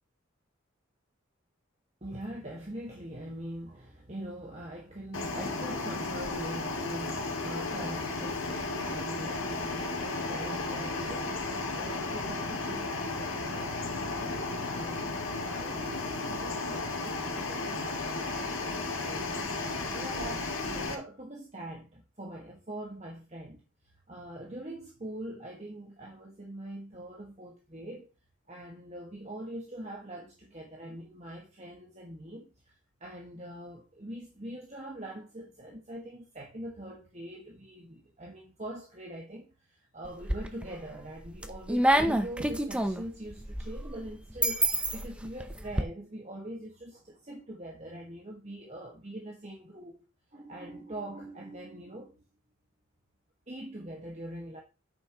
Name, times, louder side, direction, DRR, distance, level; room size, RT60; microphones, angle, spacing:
voice 1, 2.0-19.7 19.9-23.6 24.1-28.1 28.5-50.0 50.3-52.2 53.5-54.6, right 1 dB, 35° right, 1.7 m, -43 dB
sound 1, 5.1-20.9, left 3 dB, 75° left, 2.2 m, -34 dB
sound 2, 40.1-40.8 41.2-45.8, right 1 dB, 5° right, 0.7 m, -28 dB
8.9 x 7.0 x 3.0 m
head